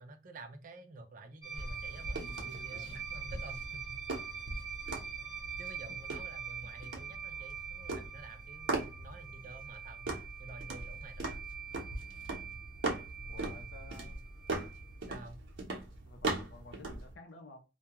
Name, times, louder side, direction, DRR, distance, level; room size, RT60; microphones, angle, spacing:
voice 1, 0.0-4.3 5.6-11.4 15.1-15.4, right 2 dB, 45° right, 0.4 m, -51 dB
sound 1, 1.4-15.1, right 7 dB, 30° left, 1.0 m, -45 dB
sound 2, 1.5-17.1, right 2 dB, 70° right, 0.7 m, -40 dB
voice 2, 13.3-14.2 16.0-17.6, left 2 dB, 60° left, 0.6 m, -52 dB
2.2 x 2.2 x 2.8 m
head